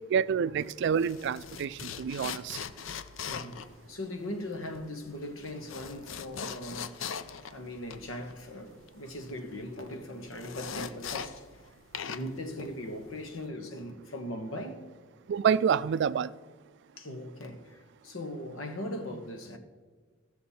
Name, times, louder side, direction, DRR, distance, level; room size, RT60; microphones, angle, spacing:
voice 1, 0.1-2.6 15.3-16.3, right 7 dB, 60° right, 0.3 m, -28 dB
sound 1, 0.6-11.7 11.9-13.5, left 7 dB, 70° left, 0.5 m, -41 dB
voice 2, 3.3-3.6 3.9-7.0 7.5-11.5 12.1-14.9 17.0-19.6, left 1 dB, 85° left, 1.3 m, -39 dB
15.5 x 6.6 x 4.2 m
head